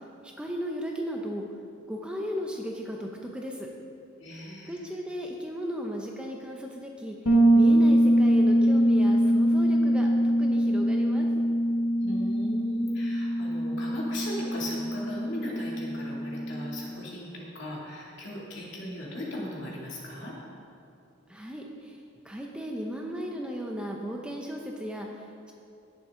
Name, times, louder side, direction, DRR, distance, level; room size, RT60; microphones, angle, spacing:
voice 1, 0.2-1.4 1.9-3.7 4.7-11.3 21.3-25.5, equal, 5° right, 0 dB, 0.7 m, -36 dB
voice 2, 4.2-4.8 12.0-20.4, left 1 dB, 55° left, -4 dB, 2.5 m, -38 dB
Bass guitar, 7.2-16.9, right 1 dB, 90° left, 1.5 m, -23 dB
17.0 x 7.2 x 3.8 m, 2.5 s
head